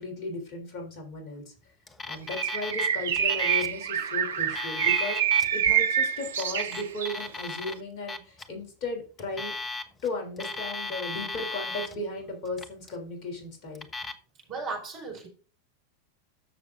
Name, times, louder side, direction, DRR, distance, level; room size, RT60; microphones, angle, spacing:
voice 1, 0.0-1.5 2.0-5.2 5.5-9.5 10.0-13.8, left 2 dB, 40° left, 4 dB, 3.3 m, -36 dB
Alarm, 1.9-2.9 3.2-3.8 4.4-5.5 6.3-7.7 8.1-8.4 9.2-10.1 10.4-12.0 12.5-13.0 13.7-14.1, left 3 dB, 15° left, 1.1 m, -36 dB
Bird, 2.3-7.2, right 9 dB, 60° right, 0.7 m, -26 dB
voice 2, 14.5-15.3, right 4 dB, 35° right, 1 dB, 4.6 m, -35 dB
14.0 x 6.6 x 2.6 m, 0.36 s
figure-of-eight pair, 90°, 0 cm